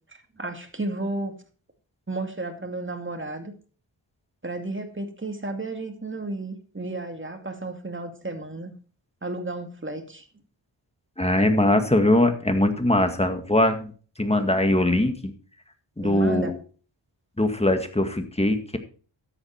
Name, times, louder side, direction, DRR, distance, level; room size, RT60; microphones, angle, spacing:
voice 1, 0.1-1.4 2.1-3.5 4.4-8.7 9.2-10.3 16.0-16.5, right 2 dB, 25° right, 6 dB, 2.3 m, -33 dB
voice 2, 11.2-13.9 14.2-15.3 16.0-16.6 17.4-18.8, left 1 dB, 15° left, 7 dB, 2.0 m, -21 dB
13.0 x 8.3 x 4.4 m, 0.40 s
wide cardioid pair, 55°, 44 cm